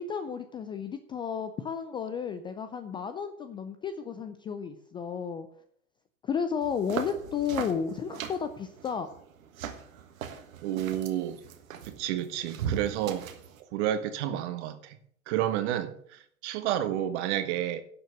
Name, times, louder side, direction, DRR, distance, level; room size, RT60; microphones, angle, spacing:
voice 1, 0.0-5.5 6.2-9.1, left 7 dB, 10° left, 0.4 m, -33 dB
sound 1, 6.6-13.6, right 8 dB, 70° right, 1.5 m, -39 dB
voice 2, 10.6-11.4 11.9-13.3 13.7-15.0 15.3-17.8, right 11 dB, 50° right, 1.4 m, -30 dB
11.5 x 6.4 x 6.3 m
hypercardioid pair, 100°, 42 cm